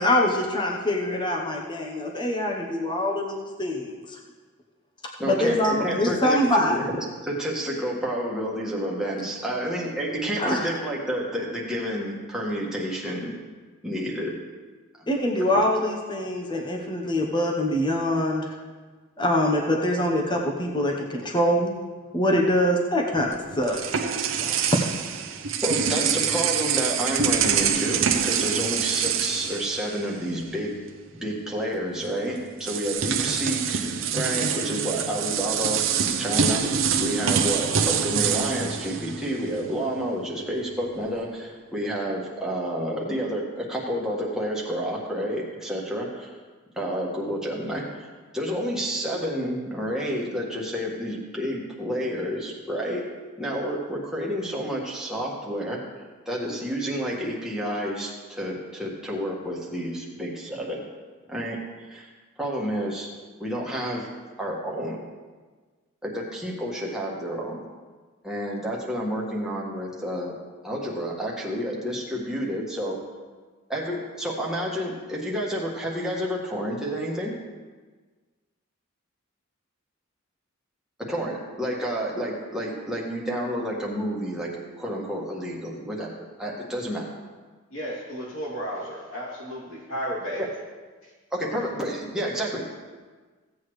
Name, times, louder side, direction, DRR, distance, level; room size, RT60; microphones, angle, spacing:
voice 1, 0.0-3.9 5.2-6.8 10.4-10.7 15.1-18.5 19.2-21.7 22.1-23.8 24.4-24.8, left 1 dB, 20° left, 0 dB, 0.9 m, -24 dB
voice 2, 5.2-6.8 7.2-13.3 13.8-14.3 15.0-15.6 25.6-30.8 31.2-33.8 34.1-35.8 36.2-36.6 37.0-46.3 46.7-48.1 48.3-53.0 53.4-60.8 61.3-62.1 62.4-63.1 63.4-64.1 64.4-65.0 66.0-67.7 68.2-70.3 70.6-73.0 73.7-77.3 81.1-84.5 84.8-86.1 86.4-87.1 90.4-90.5 91.3-92.7, equal, 5° right, -4 dB, 1.7 m, -30 dB
sound 1, 23.2-30.4 30.7-30.9 32.0-32.1 32.6-39.8, right 7 dB, 65° right, 0.7 m, -26 dB
voice 3, 87.7-90.4, equal, 70° left, -4 dB, 2.9 m, -33 dB
16.0 x 8.4 x 3.2 m, 1.4 s
head